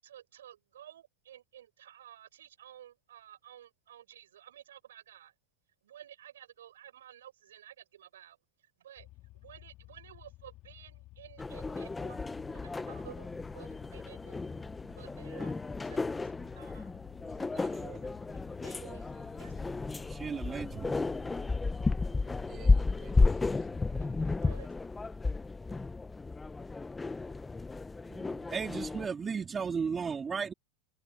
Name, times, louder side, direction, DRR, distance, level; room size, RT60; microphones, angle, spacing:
voice 1, 0.0-5.3 5.8-9.1 9.3-12.2 12.5-14.4 15.0-15.6 15.8-16.9 18.6-19.0 19.4-19.5 24.0-24.7, right 11 dB, 90° right, 7.2 m, -53 dB
sound 1, 9.0-24.3, left 18 dB, 50° left, 2.6 m, -54 dB
sound 2, 11.4-29.1, left 3 dB, 15° left, 0.9 m, -33 dB
voice 2, 17.3-19.4 21.8-24.5 24.9-25.5, right 11 dB, 40° right, 3.7 m, -55 dB
voice 3, 20.1-21.3 28.1-30.5, right 6 dB, 25° right, 2.9 m, -35 dB
hypercardioid pair, 105°, 0 cm